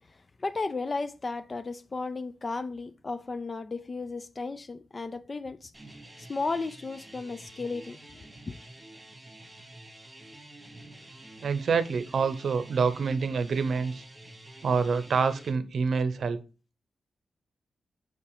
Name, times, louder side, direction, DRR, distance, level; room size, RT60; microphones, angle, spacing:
voice 1, 0.4-5.7 6.3-8.6, left 3 dB, 35° left, 0.4 m, -34 dB
sound 1, 5.7-15.5, right 1 dB, 10° right, 2.1 m, -49 dB
voice 2, 11.4-14.0 14.6-16.4, right 5 dB, 70° right, 0.7 m, -27 dB
5.8 x 4.6 x 4.8 m
cardioid pair, 95°, 0 cm